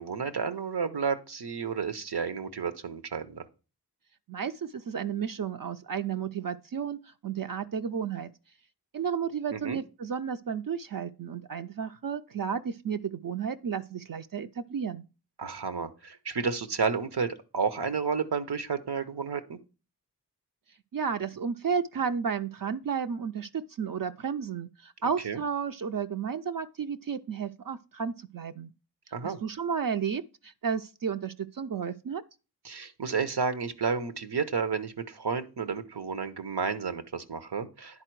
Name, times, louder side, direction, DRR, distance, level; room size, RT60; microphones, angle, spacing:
voice 1, 0.0-3.5 9.5-9.8 15.4-19.6 25.2-25.4 29.1-29.4 32.6-38.0, right 5 dB, 80° right, 0.8 m, -31 dB
voice 2, 4.3-8.3 8.9-15.1 20.9-28.7 29.2-32.2, right 7 dB, 60° right, 0.5 m, -32 dB
9.9 x 4.2 x 4.6 m
wide cardioid pair, 40°, 39 cm